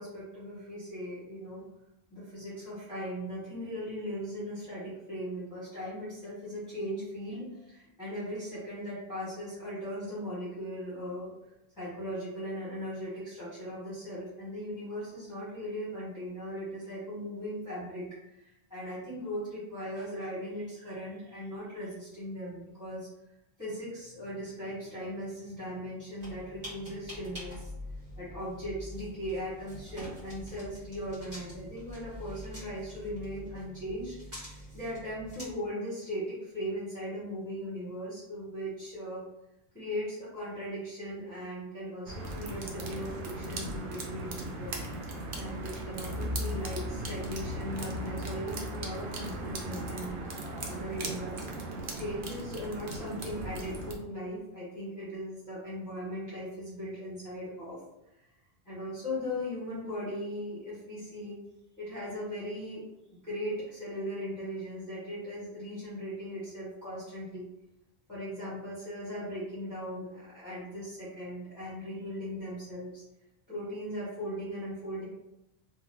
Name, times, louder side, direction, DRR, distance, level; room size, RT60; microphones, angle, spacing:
voice 1, 0.0-1.6 2.1-11.3 11.8-23.1 23.6-27.7 28.2-39.2 39.7-44.8 45.3-51.4 51.9-57.8 58.6-61.4 61.8-62.9 63.2-67.5 68.1-73.0 73.5-75.0, equal, 20° left, -12 dB, 1.1 m, -38 dB
sound 1, 26.2-35.5, equal, 40° right, 1.4 m, -45 dB
sound 2, 42.1-53.9, right 1 dB, 60° right, 0.7 m, -37 dB
2.7 x 2.1 x 3.3 m, 0.90 s
omnidirectional pair, 1.1 m